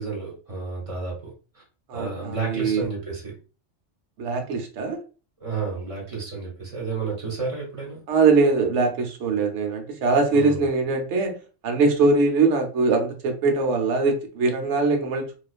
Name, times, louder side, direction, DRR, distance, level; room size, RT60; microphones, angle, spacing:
voice 1, 0.0-1.6 1.9-3.3 5.4-8.0 10.3-10.6, right 4 dB, 30° right, -3 dB, 1.0 m, -31 dB
voice 2, 1.9-2.9 4.2-5.0 8.1-11.4 11.6-15.3, right 3 dB, 70° right, 4 dB, 0.9 m, -22 dB
2.3 x 2.3 x 2.3 m, 0.35 s
omnidirectional pair, 1.3 m